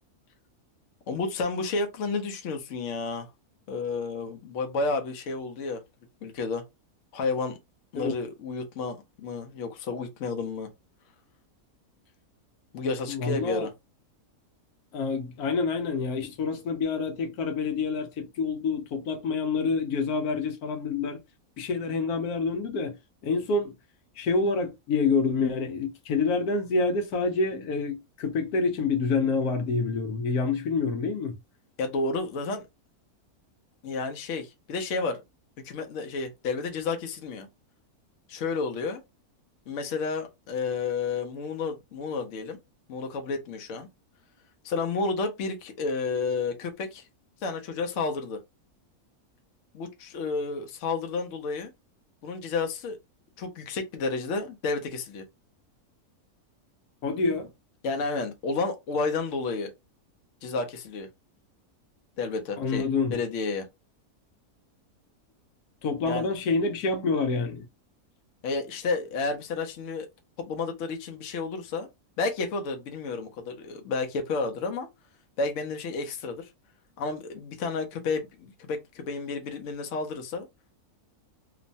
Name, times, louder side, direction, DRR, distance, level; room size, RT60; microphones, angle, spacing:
voice 1, 1.1-3.3 3.7-5.8 6.2-6.6 7.1-7.6 7.9-10.7 12.7-13.7 31.8-32.6 33.8-35.2 35.6-37.5 38.3-39.0 39.7-42.6 42.9-43.9 44.6-47.0 47.4-48.4 49.7-51.7 52.2-53.0 53.4-55.2 57.8-59.7 60.4-61.1 62.2-63.7 66.0-66.3 68.4-70.1 70.4-71.9 72.2-74.9 75.4-76.5 77.0-80.5, left 4 dB, 65° left, 0.9 m, -31 dB
voice 2, 13.1-13.7 14.9-21.2 21.6-23.0 23.2-23.7 24.2-31.3 57.0-57.5 62.6-63.2 65.8-67.6, left 4 dB, 80° left, 1.2 m, -27 dB
3.0 x 2.1 x 2.6 m
omnidirectional pair, 1.6 m